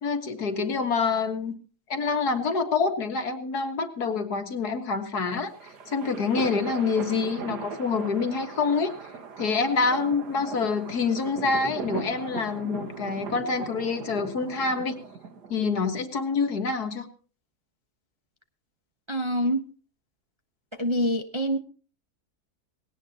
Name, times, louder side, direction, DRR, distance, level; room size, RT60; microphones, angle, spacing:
voice 1, 0.0-1.5 1.9-5.5 5.9-8.9 9.4-15.0 15.5-17.1, left 4 dB, 75° left, 7 dB, 2.2 m, -26 dB
sound 1, 5.3-15.8, right 5 dB, 90° right, 2.1 m, -39 dB
voice 2, 19.1-19.7 20.8-21.6, equal, 25° right, 6 dB, 0.7 m, -26 dB
19.0 x 17.5 x 2.8 m, 0.39 s
omnidirectional pair, 1.7 m